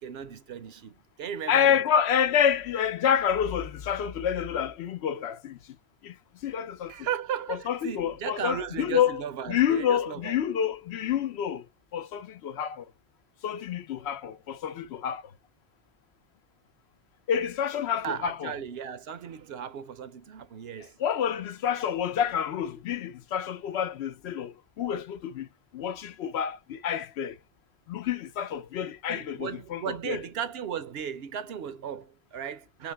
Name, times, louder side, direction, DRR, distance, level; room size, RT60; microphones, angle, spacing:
voice 1, 0.0-1.8 6.9-10.4 18.0-21.0 29.1-32.9, right 8 dB, 70° right, 0.9 m, -36 dB
voice 2, 1.5-5.6 6.0-6.2 6.4-6.9 7.5-9.2 9.5-11.6 11.9-12.8 13.4-15.2 17.3-18.5 21.0-25.5 25.7-27.4 27.9-30.2, left 9 dB, 80° left, 0.9 m, -28 dB
3.4 x 3.0 x 3.4 m
omnidirectional pair, 1.1 m